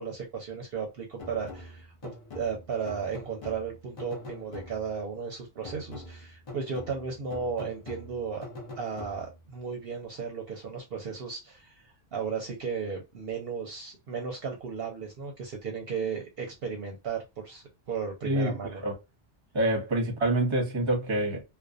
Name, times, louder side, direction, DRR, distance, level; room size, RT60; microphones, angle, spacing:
voice 1, 0.0-8.5 8.8-18.8, right 5 dB, 65° right, 0.7 m, -35 dB
sound 1, 1.2-5.1 5.6-9.5, left 2 dB, 45° left, 0.4 m, -45 dB
voice 2, 18.2-18.6 18.8-18.9 19.5-21.4, right 1 dB, 30° right, 0.7 m, -26 dB
2.5 x 2.2 x 2.3 m
omnidirectional pair, 1.2 m